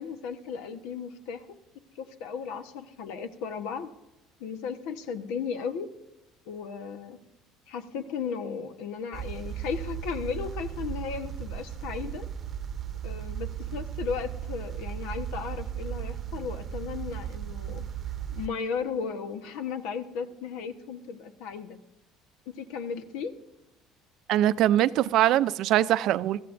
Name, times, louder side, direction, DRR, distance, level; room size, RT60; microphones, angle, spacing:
voice 1, 0.0-1.4 2.0-3.9 4.4-5.9 6.5-7.2 7.7-12.3 13.0-17.8 18.3-21.8 22.5-23.3, left 6 dB, 80° left, 1.2 m, -35 dB
sound 1, 9.1-18.5, right 10 dB, 35° right, 0.8 m, -36 dB
voice 2, 24.3-26.4, right 13 dB, 60° right, 0.5 m, -22 dB
22.0 x 15.0 x 2.6 m
cardioid pair, 130°, 0 cm